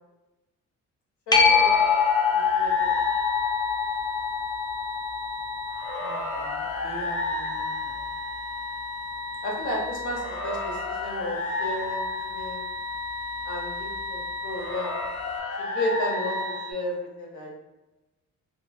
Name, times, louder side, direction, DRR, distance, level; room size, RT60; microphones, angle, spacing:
voice 1, 1.3-1.7 2.3-3.0 9.4-12.7 13.4-14.9 15.6-17.5, left 1 dB, 75° left, -2 dB, 1.0 m, -33 dB
sound 1, 1.3-8.5 14.0-14.1, left 6 dB, 15° left, 0.5 m, -25 dB
sound 2, 1.4-16.7, left 3 dB, 50° left, 0.7 m, -32 dB
voice 2, 6.0-8.1, right 1 dB, 20° right, -5 dB, 0.8 m, -44 dB
3.0 x 2.7 x 2.4 m, 1.0 s
cardioid pair, 90°, 30 cm